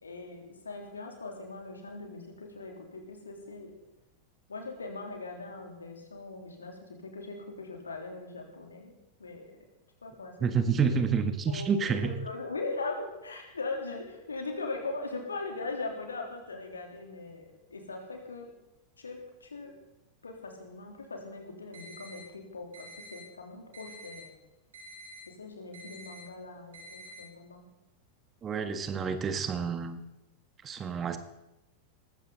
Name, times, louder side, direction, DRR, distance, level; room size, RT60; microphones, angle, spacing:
voice 1, 0.0-3.7 4.5-8.9 9.2-9.5 10.0-11.0 11.5-18.6 19.0-19.7 20.2-24.3 25.3-27.7, left 3 dB, 75° left, 2 dB, 3.4 m, -40 dB
voice 2, 10.4-12.2 28.4-30.0 30.6-31.2, right 6 dB, 25° right, 9 dB, 1.5 m, -29 dB
sound 1, 21.7-22.2 22.7-23.2 23.7-24.2 24.7-25.2 25.7-26.2 26.7-27.2, right 2 dB, 65° right, 7.8 m, -48 dB
19.0 x 15.5 x 4.0 m, 0.95 s
figure-of-eight pair, 90°, 0 cm